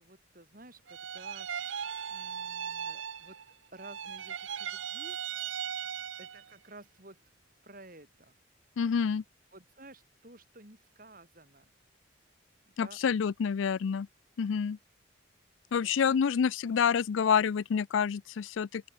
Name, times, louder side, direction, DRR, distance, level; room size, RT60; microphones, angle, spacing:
voice 1, 0.0-1.7 2.1-3.4 3.7-5.2 6.2-7.2 7.6-8.4 9.5-11.7 12.8-13.0 15.8-16.2, right 2 dB, 45° right, 5.9 m, -53 dB
sound 1, 0.9-3.5 3.8-6.5, right 8 dB, 75° right, 0.8 m, -38 dB
voice 2, 8.8-9.2 12.8-14.1 14.4-14.8 15.7-18.9, left 7 dB, 75° left, 0.4 m, -28 dB
open air
head